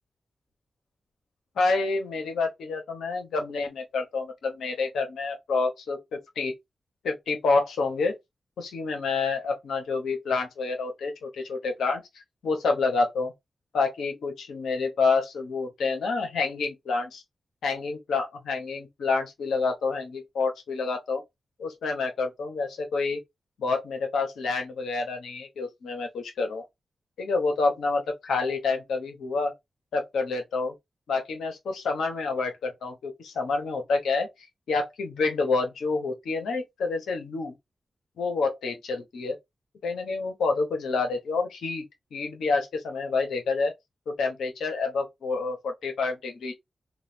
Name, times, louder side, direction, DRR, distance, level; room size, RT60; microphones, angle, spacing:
voice 1, 1.6-6.5 7.0-8.2 8.6-12.0 12.4-13.3 13.7-17.2 17.6-21.2 21.6-23.2 23.6-26.6 27.2-29.5 29.9-30.7 31.1-34.3 34.7-37.5 38.2-39.4 39.8-41.8 42.1-43.7 44.1-46.5, left 4 dB, 90° left, 0.8 m, -28 dB
3.0 x 2.2 x 2.6 m
supercardioid pair, 40°, 0 cm